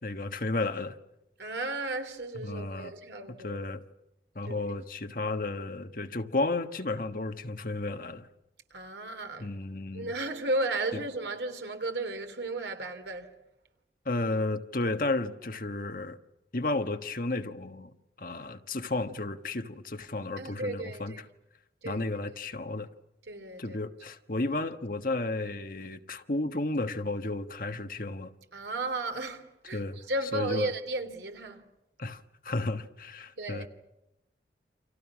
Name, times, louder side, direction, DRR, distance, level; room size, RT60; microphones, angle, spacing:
voice 1, 0.0-1.0 2.3-2.9 3.4-3.8 4.3-8.3 9.4-10.1 10.9-11.0 14.0-16.2 16.5-17.9 18.2-21.2 21.8-22.9 23.6-28.3 29.7-30.0 30.3-30.7 32.0-33.7, left 2 dB, 50° left, 1.3 m, -33 dB
voice 2, 1.4-3.6 4.4-4.6 8.7-9.6 9.9-13.3 20.4-21.2 21.8-22.1 23.3-23.8 28.5-31.7 33.4-33.7, right 2 dB, 75° right, 3.0 m, -34 dB
29.5 x 27.0 x 6.2 m
head